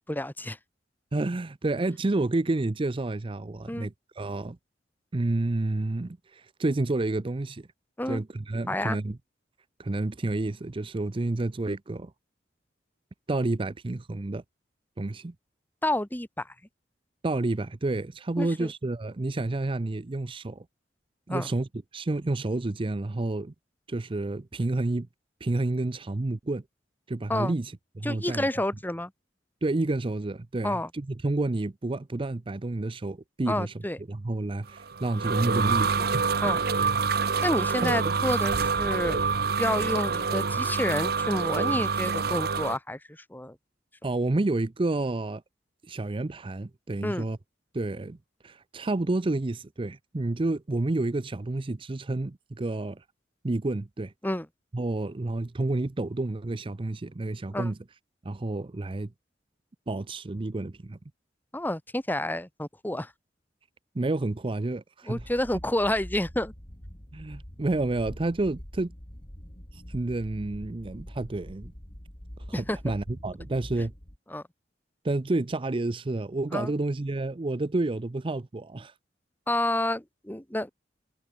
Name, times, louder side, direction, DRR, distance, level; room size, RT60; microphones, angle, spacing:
voice 1, 0.1-0.6 3.7-3.9 8.0-8.2 8.7-9.0 15.8-16.5 18.4-18.7 21.3-21.5 27.3-27.5 28.0-29.1 30.6-30.9 33.5-34.0 36.4-36.6 37.4-39.2 39.6-43.6 47.0-47.2 54.2-54.5 57.5-57.7 61.5-63.1 65.1-66.5 72.5-72.8 74.3-74.4 76.5-76.7 79.5-80.7, left 1 dB, 10° left, 1.6 m, -29 dB
voice 2, 1.1-4.6 5.1-7.7 8.1-9.2 9.8-12.1 13.3-14.4 15.0-15.3 17.2-20.6 21.3-21.7 21.9-23.5 23.9-25.1 25.4-26.6 27.1-27.7 28.0-28.4 29.6-33.7 34.1-36.1 36.4-36.6 37.8-38.1 44.0-45.4 45.9-47.4 47.7-48.2 48.4-53.0 53.4-54.1 54.7-57.8 58.2-59.1 59.9-61.0 63.9-65.3 67.1-68.9 69.7-71.7 72.5-73.9 75.0-78.9, right 2 dB, 30° right, 0.5 m, -29 dB
sound 1, 34.8-42.8, right 5 dB, 60° right, 1.0 m, -26 dB
sound 2, 65.1-74.2, equal, 30° left, 3.3 m, -44 dB
head